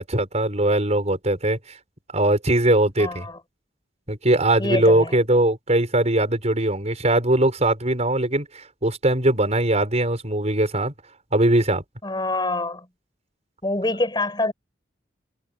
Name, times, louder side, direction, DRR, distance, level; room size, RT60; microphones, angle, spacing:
voice 1, 0.0-1.6 2.1-3.3 4.1-10.9 11.3-11.8, right 1 dB, 40° right, 5.8 m, -20 dB
voice 2, 3.0-3.4 4.6-5.2 12.0-12.9 13.6-14.5, left 2 dB, 25° left, 6.8 m, -25 dB
head